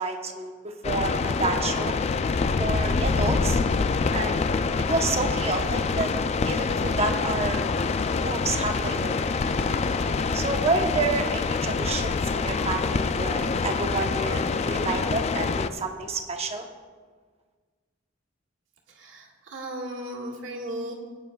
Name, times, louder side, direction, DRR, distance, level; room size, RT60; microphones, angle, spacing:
voice 1, 0.0-2.0 2.6-3.6 4.1-4.4 4.9-6.1 6.4-7.7 8.2-9.2 9.7-9.8 10.3-16.7, right 3 dB, 30° right, 4 dB, 0.9 m, -29 dB
sound 1, 0.8-15.7, left 4 dB, 35° left, 0.3 m, -26 dB
voice 2, 18.9-20.9, right 1 dB, 90° right, -2 dB, 1.8 m, -36 dB
18.5 x 9.5 x 2.3 m, 1.5 s
head